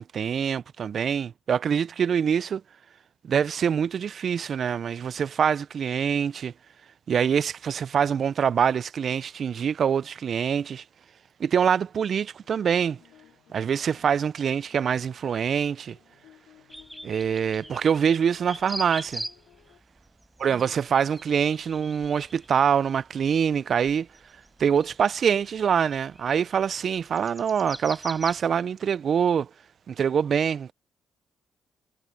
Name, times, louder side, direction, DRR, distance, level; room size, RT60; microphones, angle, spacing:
voice 1, 0.0-2.6 3.2-6.5 7.1-10.8 11.4-13.0 13.5-16.0 17.0-19.2 20.4-24.1 24.6-29.5 29.9-30.7, right 7 dB, 55° right, 0.3 m, -25 dB
sound 1, 12.4-19.8, left 12 dB, 85° left, 4.4 m, -57 dB
sound 2, 16.7-19.6 20.0-28.4, right 1 dB, 5° right, 4.4 m, -42 dB
cardioid pair, 90°, 0 cm